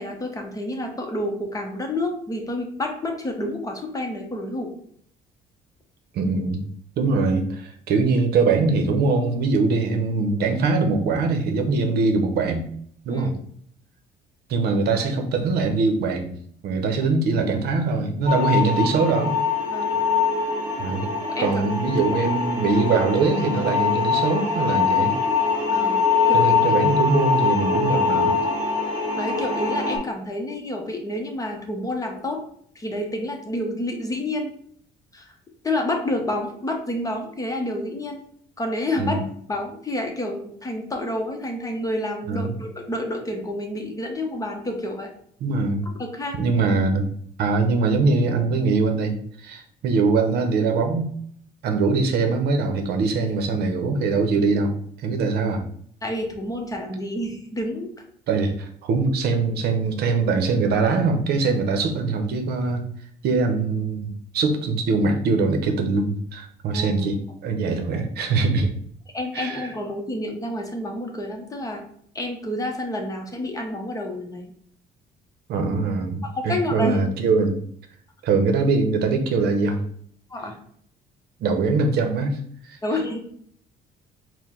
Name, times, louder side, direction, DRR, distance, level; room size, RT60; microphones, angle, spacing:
voice 1, 0.0-4.7 13.1-13.3 19.7-20.0 21.2-21.6 25.7-26.6 29.1-32.4 32.7-34.5 35.1-35.3 35.6-38.2 38.6-39.2 39.5-45.1 46.0-46.4 56.0-57.9 66.7-66.9 69.1-71.8 72.1-74.5 76.2-77.0 80.3-80.5 82.8-83.2, left 1 dB, 20° left, 3 dB, 0.8 m, -29 dB
voice 2, 6.1-6.6 7.0-12.7 13.0-13.3 14.5-16.3 16.6-19.3 20.8-21.1 21.4-25.1 26.3-28.3 39.0-39.2 42.3-42.5 45.4-45.9 46.4-47.1 47.4-51.1 51.6-54.7 55.0-55.6 58.3-62.8 63.2-68.7 69.3-69.7 75.5-77.6 78.2-79.8 81.4-82.4 82.7-82.8, right 4 dB, 70° right, 5 dB, 0.7 m, -22 dB
sound 1, 18.3-30.0, left 5 dB, 25° right, 1.7 m, -23 dB
4.5 x 2.1 x 3.7 m, 0.63 s
cardioid pair, 110°, 17 cm